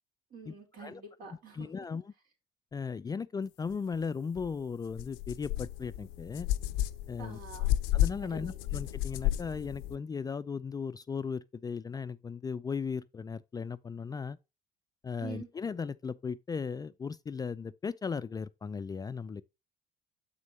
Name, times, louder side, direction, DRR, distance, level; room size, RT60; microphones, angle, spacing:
voice 1, 0.3-1.9 7.2-7.7 8.2-8.7 15.2-15.5, right 4 dB, 60° right, 3.7 m, -47 dB
voice 2, 1.5-2.1 2.7-6.5 7.1-7.4 7.9-14.4 15.0-19.4, left 5 dB, 25° left, 0.4 m, -37 dB
sound 1, 4.4-4.5 4.9-10.0, left 13 dB, 80° left, 0.5 m, -32 dB
7.5 x 6.1 x 2.8 m
hypercardioid pair, 65°, 16 cm